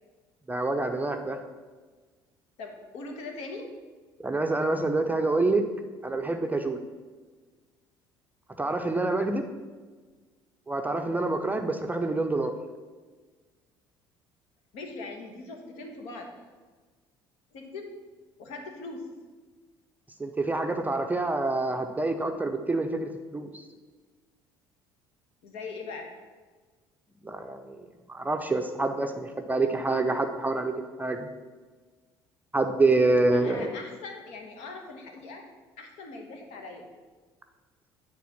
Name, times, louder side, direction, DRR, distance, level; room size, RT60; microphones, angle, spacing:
voice 1, 0.5-1.4 4.2-5.6 6.0-6.8 8.6-9.5 10.7-12.5 20.2-23.6 27.2-27.8 28.1-30.7 31.0-31.3 32.5-33.7, right 2 dB, 10° right, 5 dB, 0.7 m, -27 dB
voice 2, 2.6-3.7 14.7-16.4 17.5-18.0 18.4-19.1 25.4-26.2 33.3-35.4 35.8-36.9, left 3 dB, 55° left, 3 dB, 1.3 m, -41 dB
9.4 x 4.2 x 6.0 m, 1.4 s
figure-of-eight pair, 55°, 13 cm